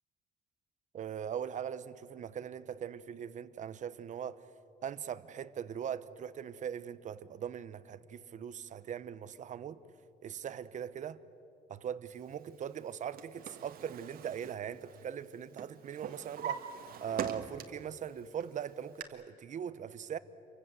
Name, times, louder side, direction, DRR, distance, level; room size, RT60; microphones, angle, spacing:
voice 1, 0.9-4.4 4.8-9.8 10.2-11.2 11.7-20.2, right 8 dB, 45° right, 1.0 m, -40 dB
Drawer open or close, 12.8-15.3 15.6-17.9 18.3-19.0, right 8 dB, 65° right, 1.7 m, -42 dB
27.5 x 24.0 x 7.6 m
cardioid pair, 110°, 17 cm